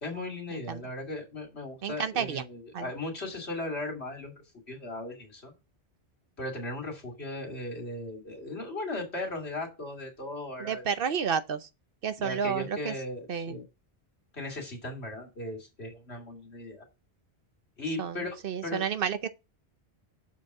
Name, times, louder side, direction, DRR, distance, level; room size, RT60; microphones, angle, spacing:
voice 1, 0.0-4.3 4.7-5.5 6.4-10.8 12.2-13.6 14.3-16.9 17.8-18.8, left 2 dB, 80° left, 2.8 m, -37 dB
voice 2, 1.8-2.4 2.7-2.9 10.6-11.7 12.0-12.9 13.3-13.6 18.0-19.3, right 7 dB, 60° right, 0.9 m, -31 dB
7.2 x 4.6 x 6.0 m
omnidirectional pair, 1.1 m